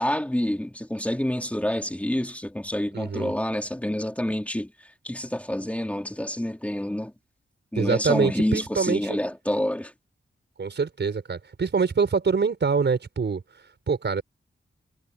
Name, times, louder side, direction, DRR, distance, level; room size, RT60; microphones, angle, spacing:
voice 1, 0.0-4.7 5.0-7.1 7.7-9.9, left 1 dB, 5° left, 2.5 m, -27 dB
voice 2, 2.9-3.3 7.8-9.2 10.6-13.4 13.9-14.2, right 5 dB, 60° right, 5.6 m, -25 dB
wide cardioid pair, 120°, 20 cm